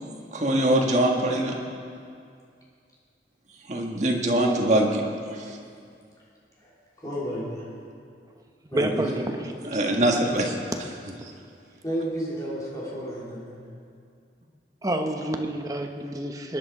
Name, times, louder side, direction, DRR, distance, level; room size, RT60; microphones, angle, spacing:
voice 1, 0.3-1.5 3.7-5.0 5.3-5.6 8.8-9.0 9.7-10.6, right 1 dB, 40° right, 0 dB, 1.6 m, -23 dB
voice 2, 7.0-7.7 8.7-9.0 11.8-13.6, right 1 dB, 20° left, -7 dB, 3.6 m, -32 dB
voice 3, 8.7-9.5 14.8-16.6, right 1 dB, 20° right, 3 dB, 0.9 m, -28 dB
21.0 x 10.0 x 4.8 m, 2.3 s
head